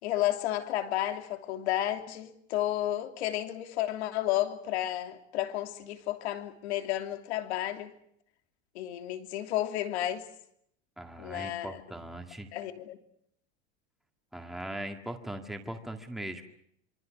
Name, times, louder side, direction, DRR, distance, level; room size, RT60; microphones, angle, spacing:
voice 1, 0.0-7.9 8.7-10.2 11.2-11.8 12.5-13.0, left 13 dB, 75° left, 3.2 m, -32 dB
voice 2, 11.0-12.5 14.3-16.4, right 1 dB, ahead, 1.9 m, -39 dB
26.5 x 25.0 x 6.4 m
supercardioid pair, 165°, 33 cm